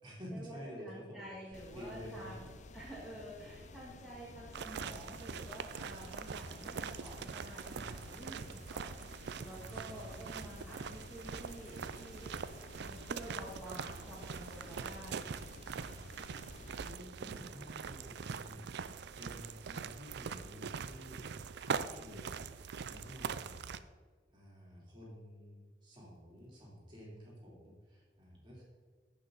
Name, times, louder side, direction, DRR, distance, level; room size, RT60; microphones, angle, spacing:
voice 1, 0.0-2.3 4.7-5.0 7.6-8.6 9.5-10.2 15.1-22.5 22.8-23.8 24.3-28.6, equal, 25° right, -5 dB, 3.3 m, -51 dB
voice 2, 0.8-2.5 2.7-12.3 12.8-15.3 17.2-17.6, right 1 dB, ahead, -8 dB, 1.8 m, -50 dB
sound 1, 1.5-16.9, left 3 dB, 40° left, 0.5 m, -53 dB
sound 2, 4.5-23.8, right 6 dB, 65° right, 0.4 m, -43 dB
15.0 x 5.9 x 4.0 m, 1.5 s
head